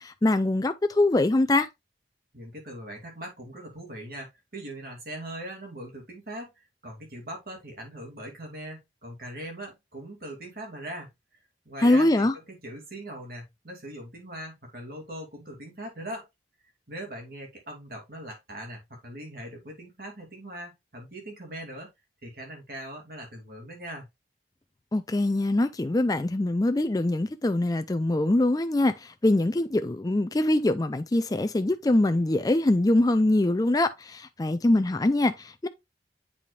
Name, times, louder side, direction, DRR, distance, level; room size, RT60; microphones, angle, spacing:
voice 1, 0.0-1.7 11.8-12.3 24.9-35.7, left 2 dB, 20° left, 0.4 m, -23 dB
voice 2, 2.3-6.5 6.8-11.1 11.6-16.3 16.9-21.9 22.2-24.1, right 1 dB, 55° right, 2.7 m, -40 dB
8.5 x 5.0 x 2.4 m
head